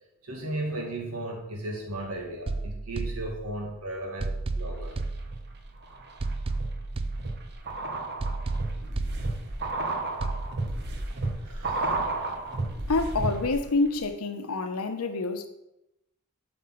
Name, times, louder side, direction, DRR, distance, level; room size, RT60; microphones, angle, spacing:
voice 1, 0.2-5.0 6.3-6.4 7.8-7.9 11.4-12.0, right 1 dB, 85° right, 2.1 m, -36 dB
sound 1, 2.5-3.8 4.2-5.8 6.2-7.8 8.2-9.8 10.2-10.5, right 3 dB, 25° right, 0.3 m, -33 dB
sound 2, 4.6-5.4 5.8-13.7 13.9-14.0, right 2 dB, 50° right, 0.9 m, -32 dB
voice 2, 12.9-15.5, left 3 dB, 80° left, 0.8 m, -27 dB
7.7 x 4.2 x 5.7 m
head